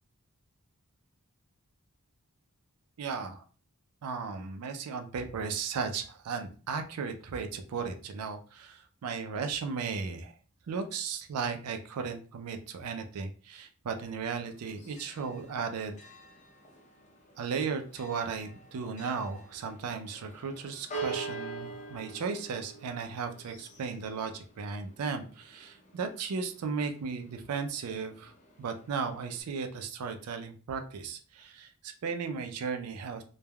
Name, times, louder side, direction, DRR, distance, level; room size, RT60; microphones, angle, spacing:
voice 1, 3.0-3.4 4.0-10.3 10.7-16.0 17.4-28.3 28.6-33.2, right 5 dB, 90° right, 7 dB, 0.4 m, -36 dB
Church bell, 14.4-29.4, right 3 dB, 35° left, 0.6 m, -46 dB
3.2 x 2.1 x 2.2 m, 0.39 s
head